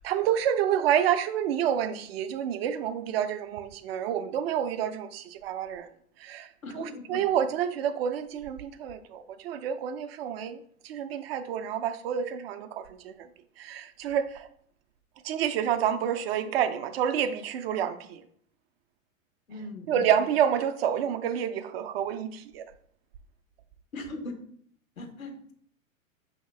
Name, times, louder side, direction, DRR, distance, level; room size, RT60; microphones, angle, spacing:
voice 1, 0.0-5.9 6.2-13.3 13.6-14.5 15.2-18.2 19.9-22.7, right 9 dB, 50° right, 0.4 m, -28 dB
voice 2, 6.6-7.2 19.5-20.0 23.9-24.3 25.0-25.5, left 2 dB, 85° left, 0.9 m, -39 dB
5.5 x 2.8 x 3.2 m
figure-of-eight pair, 95°, 41 cm